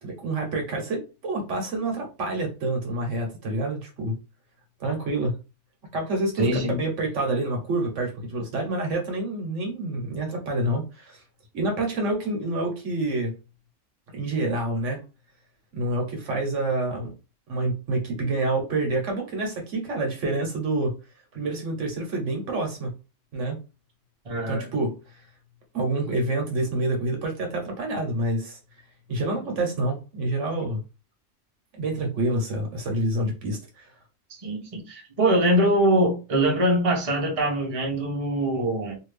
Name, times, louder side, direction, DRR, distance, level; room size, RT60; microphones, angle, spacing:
voice 1, 0.0-4.2 4.8-5.3 5.9-11.2 11.5-13.3 14.1-15.0 15.7-17.1 17.5-20.9 21.3-22.9 23.3-23.6 24.5-25.0 25.7-28.6 29.1-30.8 31.7-33.9, right 2 dB, 75° right, 1.3 m, -27 dB
voice 2, 6.4-6.8 24.2-24.7 34.4-38.9, right 1 dB, 30° right, 0.9 m, -23 dB
2.8 x 2.6 x 3.2 m
omnidirectional pair, 1.3 m